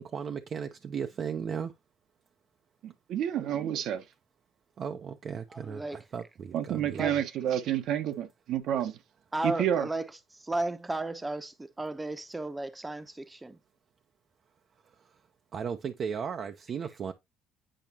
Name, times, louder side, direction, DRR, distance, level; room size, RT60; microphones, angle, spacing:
voice 1, 0.0-1.7 4.8-7.1 15.5-17.1, right 7 dB, 50° right, 0.7 m, -36 dB
voice 2, 2.8-4.0 6.5-9.0 9.4-9.9, right 10 dB, 70° right, 1.1 m, -29 dB
voice 3, 5.5-6.0 6.9-7.3 9.3-10.0 10.4-13.6, right 2 dB, 15° right, 0.9 m, -34 dB
8.9 x 4.8 x 2.9 m
supercardioid pair, 75°, 0 cm